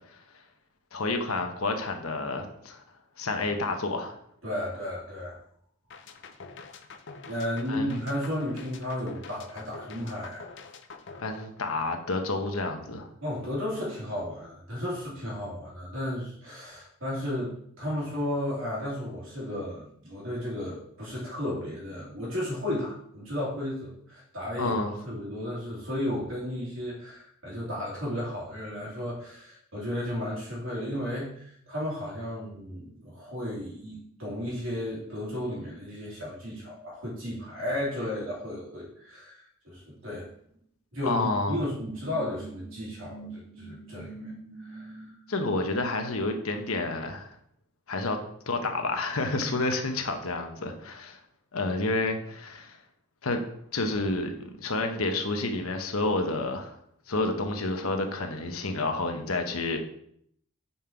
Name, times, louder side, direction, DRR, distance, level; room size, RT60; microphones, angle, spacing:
voice 1, 0.9-2.8 3.2-4.1 7.7-7.9 11.2-13.1 24.6-24.9 41.0-41.6 45.3-47.3 47.9-48.2 48.5-51.2 51.5-52.8 53.2-53.4 53.7-56.7 57.1-59.8, left 2 dB, 90° left, 4 dB, 1.1 m, -29 dB
voice 2, 4.4-5.4 7.3-10.5 13.2-24.7 25.0-40.3 40.9-45.2, left 1 dB, 70° right, -6 dB, 3.2 m, -34 dB
sound 1, 5.9-12.1, left 4 dB, 55° left, 0.6 m, -46 dB
5.8 x 5.5 x 4.4 m, 0.68 s
head